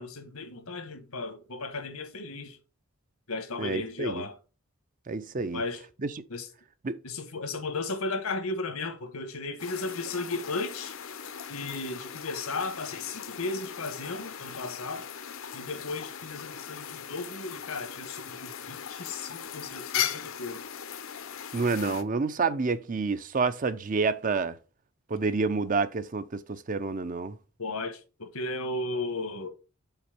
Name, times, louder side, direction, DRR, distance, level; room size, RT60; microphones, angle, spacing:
voice 1, 0.0-2.6 3.3-4.4 5.5-5.8 6.3-6.5 7.0-11.0 11.5-15.1 15.5-20.6 27.6-29.5, left 3 dB, 85° left, 1.4 m, -35 dB
voice 2, 3.6-4.3 5.1-5.6 6.0-6.1 6.8-7.0 21.5-24.5 25.1-27.4, right 4 dB, 35° right, 0.5 m, -28 dB
sound 1, 9.6-22.0, left 9 dB, 70° left, 0.7 m, -38 dB
5.7 x 4.3 x 5.7 m
head